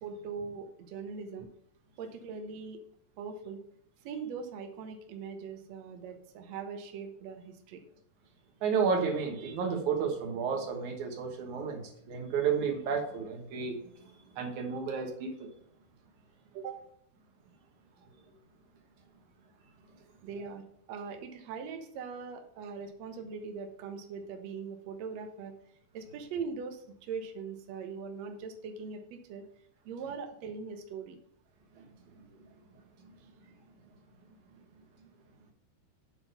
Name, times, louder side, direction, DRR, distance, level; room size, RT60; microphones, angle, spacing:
voice 1, 0.0-1.5 2.0-2.8 3.2-3.6 4.0-7.8 16.5-16.8 20.2-25.5 25.9-29.4 29.8-31.2, right 5 dB, 90° right, 5 dB, 1.5 m, -41 dB
voice 2, 8.6-11.8 12.1-13.8 14.4-15.3 31.8-31.9, right 6 dB, 60° right, 2 dB, 2.4 m, -31 dB
8.0 x 4.4 x 5.4 m, 0.71 s
omnidirectional pair, 4.4 m